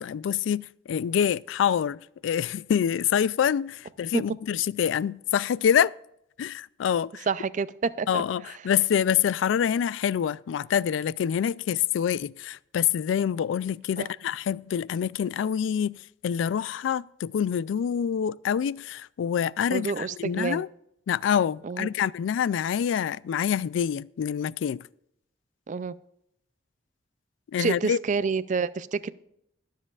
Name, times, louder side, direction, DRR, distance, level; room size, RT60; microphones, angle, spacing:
voice 1, 0.0-5.9 6.4-7.3 8.1-20.7 21.1-24.8 27.5-28.0, left 8 dB, 90° left, 0.3 m, -26 dB
voice 2, 7.3-8.5 14.0-14.1 19.7-20.6 21.6-21.9 25.7-25.9 27.6-29.1, right 5 dB, 40° right, 0.4 m, -28 dB
22.0 x 7.5 x 2.4 m
head